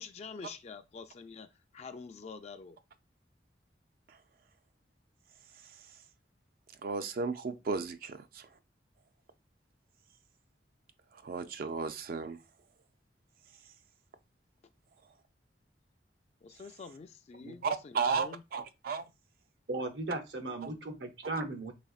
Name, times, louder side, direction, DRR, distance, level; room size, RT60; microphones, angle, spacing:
voice 1, 0.0-2.8 16.4-18.4, left 5 dB, 35° left, 0.3 m, -47 dB
voice 2, 6.8-8.5 11.2-12.4 17.6-19.1, right 5 dB, 55° right, 0.4 m, -34 dB
voice 3, 19.7-21.7, right 2 dB, 75° right, 0.8 m, -37 dB
4.1 x 3.4 x 2.3 m
head